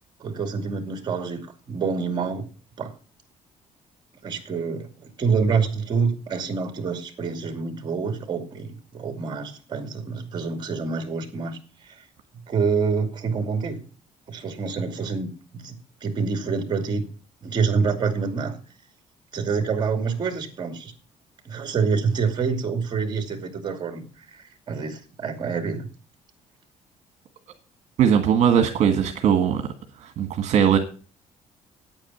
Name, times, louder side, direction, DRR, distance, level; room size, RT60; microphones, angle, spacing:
voice 1, 0.2-2.4 2.8-2.9 4.2-4.9 5.2-11.6 11.8-12.0 12.5-13.8 14.3-17.0 17.4-18.6 19.3-20.9 21.4-25.9, right 5 dB, 35° right, 6 dB, 2.4 m, -27 dB
voice 2, 28.0-29.6 30.0-30.8, right 8 dB, 60° right, 5 dB, 1.6 m, -19 dB
9.3 x 8.9 x 7.2 m, 0.39 s
cardioid pair, 150°, 13 cm